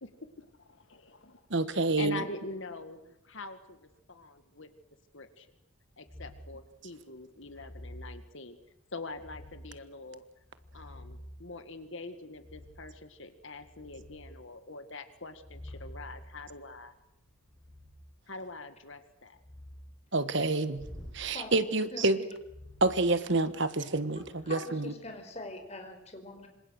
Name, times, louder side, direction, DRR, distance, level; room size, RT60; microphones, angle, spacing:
voice 1, 0.0-3.0 3.2-4.7 5.1-5.5 6.0-8.6 8.9-10.2 10.7-17.0 18.3-19.4, left 3 dB, 60° left, 1.9 m, -44 dB
voice 2, 1.5-2.2 20.1-20.9 21.1-22.2 22.8-24.9, right 2 dB, 55° right, 1.4 m, -28 dB
sound 1, 6.0-6.6 7.4-8.2 9.1-9.8 10.4-11.4 12.3-13.0 13.4-14.3 15.3-18.0 19.3-19.9 20.7-21.2 22.4-23.6 24.0-24.3, equal, 5° left, 7.7 m, -49 dB
voice 3, 21.3-22.3 24.4-26.5, left 2 dB, 30° left, 5.0 m, -43 dB
27.5 x 26.0 x 6.5 m
head